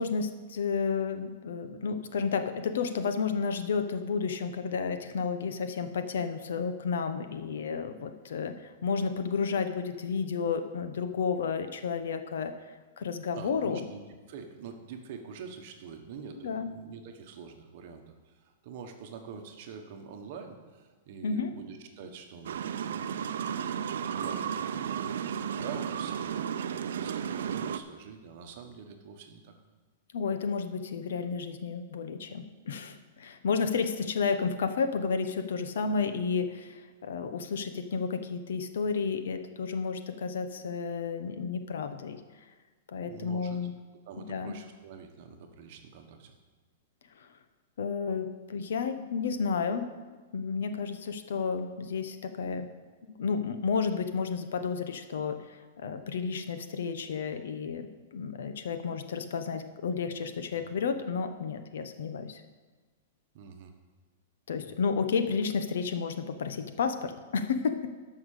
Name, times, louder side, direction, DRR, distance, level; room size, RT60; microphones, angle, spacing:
voice 1, 0.0-12.5 13.0-13.9 16.4-16.7 21.2-21.5 30.1-42.2 42.9-43.7 44.2-44.6 47.2-47.3 47.8-49.9 50.3-52.7 53.1-62.4 64.5-67.9, left 5 dB, 75° left, 9 dB, 1.0 m, -31 dB
voice 2, 13.3-14.0 14.3-23.2 23.5-29.5 33.7-33.8 42.9-43.7 44.0-46.4 60.6-60.7 63.3-63.7 64.6-64.8, right 6 dB, 40° right, 4 dB, 1.3 m, -46 dB
sound 1, 22.4-27.8, right 8 dB, 75° right, 0.6 m, -33 dB
13.0 x 5.9 x 6.6 m, 1.4 s
supercardioid pair, 175°, 0 cm